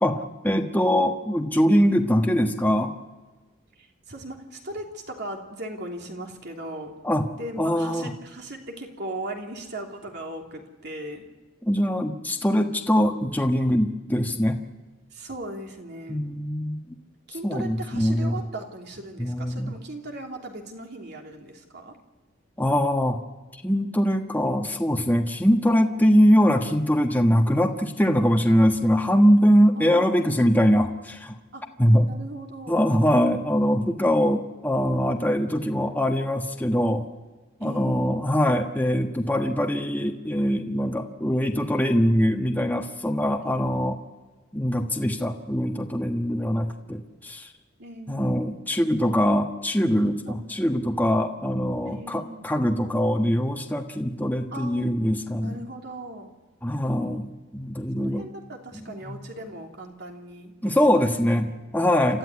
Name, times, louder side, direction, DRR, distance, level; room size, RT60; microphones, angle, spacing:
voice 1, 0.0-2.9 7.0-7.3 7.6-8.1 11.6-14.6 16.1-16.9 17.4-18.4 19.2-19.7 22.6-23.2 23.6-31.4 31.8-32.1 32.7-37.0 37.6-44.0 44.5-47.5 48.1-55.6 56.6-58.2 58.7-59.2 60.6-62.2, equal, 10° left, 3 dB, 1.3 m, -22 dB
voice 2, 3.8-6.9 7.3-11.3 15.1-16.2 17.3-22.0 29.8-30.7 31.5-31.6 32.1-32.8 37.6-38.3 43.4-43.7 47.8-48.4 50.3-50.4 51.8-52.5 54.5-55.1 55.4-56.3 58.0-61.1 62.1-62.2, right 1 dB, 55° right, 2 dB, 3.1 m, -38 dB
28.5 x 13.5 x 9.7 m, 1.2 s
head